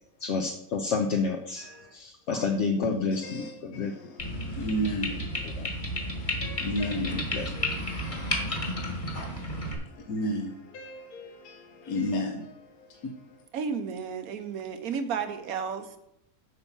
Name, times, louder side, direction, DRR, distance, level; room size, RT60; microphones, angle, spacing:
voice 1, 0.2-1.7 1.9-3.9 5.5-5.7 7.3-7.5, left 4 dB, 60° left, 4 dB, 1.0 m, -29 dB
voice 2, 1.6-1.9 2.3-2.5 3.1-5.5 5.9-7.2 7.5-13.4, equal, 75° left, 3 dB, 1.4 m, -35 dB
sound 1, 4.2-9.7, left 1 dB, 30° left, 2.0 m, -32 dB
voice 3, 13.5-16.0, right 6 dB, 75° right, 9 dB, 1.3 m, -32 dB
8.0 x 5.7 x 7.2 m, 0.79 s
omnidirectional pair, 1.6 m